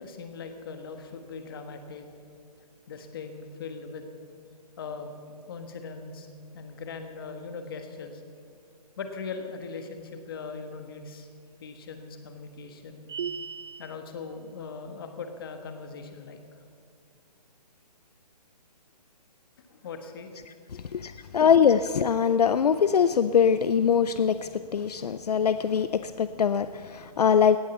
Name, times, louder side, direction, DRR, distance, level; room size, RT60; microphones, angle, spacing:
voice 1, 0.0-2.1 2.9-4.0 4.8-6.3 6.5-8.2 9.0-11.3 11.6-13.1 13.8-16.4 19.7-20.3 20.7-20.8 21.3-21.4, left 4 dB, 35° left, 6 dB, 1.4 m, -40 dB
sound 1, 13.1-13.9, right 6 dB, 40° right, 0.4 m, -35 dB
voice 2, 20.9-27.6, left 7 dB, 70° left, 12 dB, 0.5 m, -23 dB
17.5 x 8.6 x 7.1 m, 2.3 s
hypercardioid pair, 165°, 21 cm